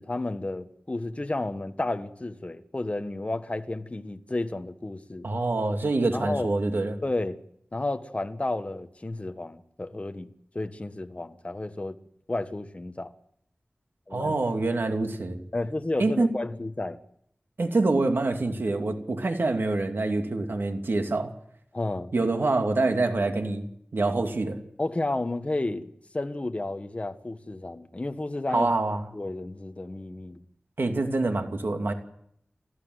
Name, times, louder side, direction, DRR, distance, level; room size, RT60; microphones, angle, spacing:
voice 1, 0.0-5.3 6.1-6.5 7.0-7.4 7.7-12.0 12.3-13.1 14.1-14.4 15.5-17.0 21.7-22.1 24.8-28.7 29.1-30.4, left 2 dB, 35° left, 1.5 m, -32 dB
voice 2, 5.2-7.0 14.1-15.4 16.0-16.3 17.6-21.3 22.1-23.7 23.9-24.6 28.5-29.0 30.8-31.9, right 2 dB, 75° right, 2.7 m, -26 dB
30.0 x 14.0 x 8.0 m
wide cardioid pair, 65°, 4 cm